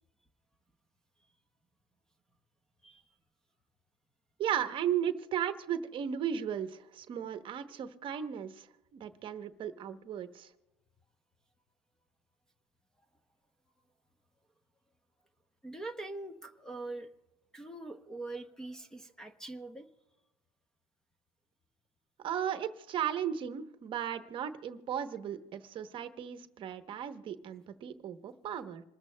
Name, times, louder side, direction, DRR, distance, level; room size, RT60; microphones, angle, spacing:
voice 1, 4.4-8.7 8.9-10.5 22.2-28.8, right 9 dB, 40° right, 9 dB, 0.9 m, -35 dB
voice 2, 15.6-17.1 17.5-19.9, right 2 dB, 5° left, 7 dB, 0.7 m, -43 dB
27.0 x 13.5 x 2.2 m, 0.99 s
supercardioid pair, 130°, 14 cm